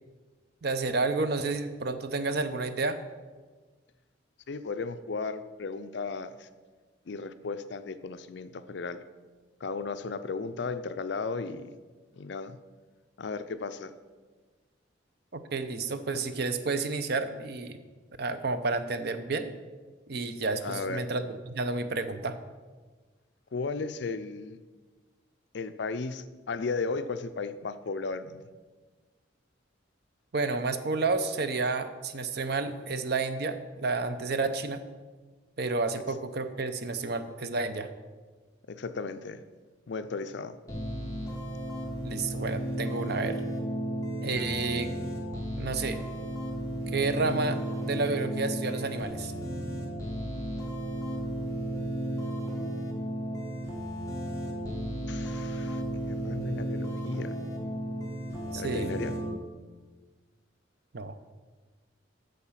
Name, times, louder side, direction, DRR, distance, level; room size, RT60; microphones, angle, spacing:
voice 1, 0.6-3.0 15.3-17.8 18.2-19.5 20.1-22.4 30.3-34.8 35.6-37.9 42.0-43.3 44.2-44.9 45.6-46.0 46.9-49.3 58.5-58.9 60.9-61.1, right 3 dB, 55° right, 10 dB, 0.6 m, -30 dB
voice 2, 4.5-6.5 7.1-9.0 9.6-11.7 12.1-12.6 13.2-13.9 20.6-21.1 23.5-24.6 25.5-28.4 38.7-39.4 39.9-40.6 54.7-54.8 55.1-55.8 56.1-57.3 58.5-59.1, left 4 dB, 60° left, 12 dB, 0.5 m, -35 dB
sound 1, 40.7-59.3, right 1 dB, 15° left, 1.4 m, -34 dB
8.4 x 6.8 x 5.8 m, 1.4 s
head